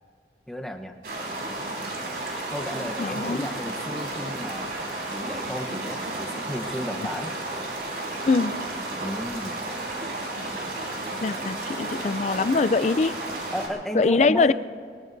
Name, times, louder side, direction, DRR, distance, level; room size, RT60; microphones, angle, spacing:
voice 1, 0.5-0.9 2.5-4.7 5.1-7.3 9.0-9.6 13.5-14.5, equal, ahead, 2 dB, 1.0 m, -33 dB
sound 1, 1.0-13.7, right 2 dB, 60° right, 4.2 m, -32 dB
voice 2, 3.0-3.5 8.2-8.5 11.2-13.1 13.9-14.5, left 3 dB, 40° left, 15 dB, 0.4 m, -22 dB
23.0 x 21.0 x 2.7 m, 2.2 s
head